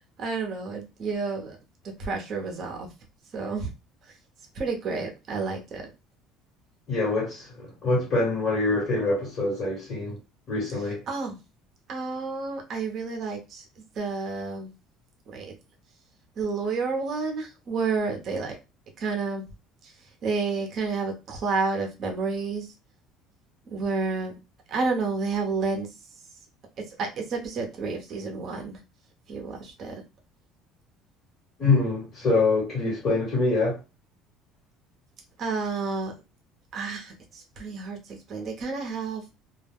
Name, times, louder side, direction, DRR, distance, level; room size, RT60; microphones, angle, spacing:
voice 1, 0.2-1.6 2.0-2.9 3.3-3.7 4.5-5.9 11.1-11.4 11.9-13.6 14.0-14.7 15.3-15.5 16.4-18.6 19.0-19.4 19.8-19.9 20.2-22.7 23.7-24.3 24.7-25.9 27.0-28.8 29.3-30.0 35.4-36.1 36.7-39.3, right 4 dB, 40° right, 0.7 m, -30 dB
voice 2, 6.9-10.2 10.5-11.0 31.6-33.8, left 3 dB, 35° left, 1.4 m, -25 dB
2.3 x 2.1 x 3.4 m
cardioid pair, 160°, 0 cm